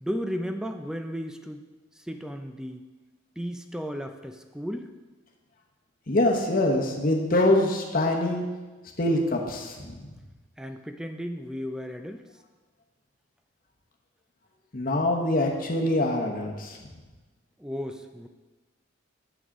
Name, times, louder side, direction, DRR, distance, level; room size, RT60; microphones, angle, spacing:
voice 1, 0.0-1.6 2.0-2.9 3.4-4.9 10.6-12.2 17.6-18.3, equal, 5° right, 7 dB, 0.3 m, -34 dB
voice 2, 6.1-8.4 9.0-10.0 14.7-16.8, left 1 dB, 45° left, 0 dB, 1.0 m, -24 dB
7.0 x 6.2 x 4.7 m, 1.3 s
head